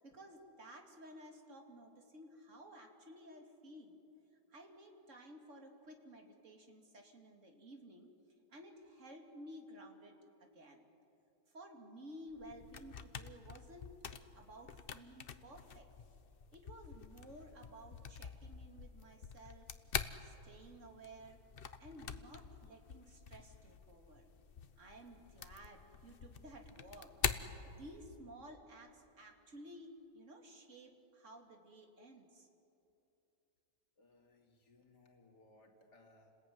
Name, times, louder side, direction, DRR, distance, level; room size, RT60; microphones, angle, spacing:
voice 1, 0.0-4.0 4.5-8.1 8.5-10.8 11.5-13.9 14.3-15.9 16.5-19.7 20.2-21.4 21.8-24.3 24.8-27.1 27.7-32.5, right 1 dB, 45° right, 2 dB, 2.9 m, -55 dB
sound 1, 12.3-28.3, left 6 dB, 45° left, 0.8 m, -46 dB
voice 2, 34.0-36.4, left 2 dB, 80° left, 2 dB, 3.2 m, -65 dB
29.5 x 20.5 x 9.5 m, 2.8 s
omnidirectional pair, 1.8 m